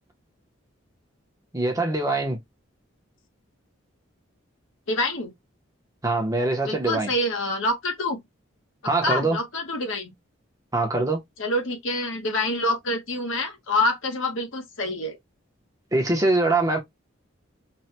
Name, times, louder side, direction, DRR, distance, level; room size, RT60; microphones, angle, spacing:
voice 1, 1.5-2.4 6.0-7.1 8.8-9.4 10.7-11.2 15.9-16.8, right 2 dB, 15° right, 0.7 m, -23 dB
voice 2, 4.9-5.3 6.7-8.2 9.0-10.1 11.4-15.2, left 2 dB, 70° left, 1.0 m, -26 dB
3.2 x 2.2 x 2.8 m
head